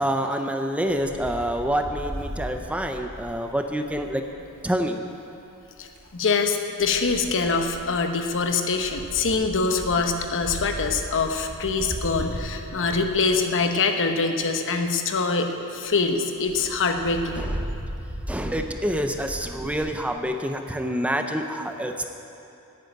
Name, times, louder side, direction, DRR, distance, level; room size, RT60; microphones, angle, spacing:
voice 1, 0.0-4.2 4.6-5.0 17.4-17.8 18.3-22.1, equal, 5° right, 5 dB, 0.6 m, -27 dB
Wind, 0.9-4.5 5.6-6.1 6.8-13.8 14.4-14.5 14.7-14.8 15.1-15.2 15.5-15.6 15.8-16.0 16.4-19.8, equal, 60° right, 2.5 m, -37 dB
voice 2, 6.1-17.4, left 4 dB, 60° left, 5 dB, 1.0 m, -24 dB
11.5 x 9.3 x 8.9 m, 2.7 s
head